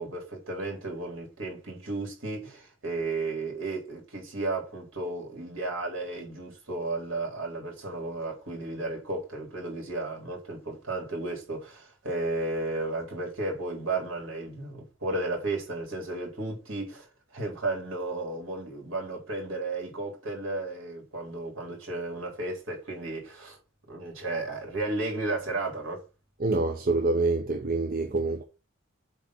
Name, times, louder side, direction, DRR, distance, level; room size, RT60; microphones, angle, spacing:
voice 1, 0.0-23.6 23.9-26.0, right 2 dB, 75° right, 3.8 m, -33 dB
voice 2, 26.4-28.4, right 3 dB, 45° right, 0.8 m, -26 dB
8.2 x 3.6 x 5.8 m
head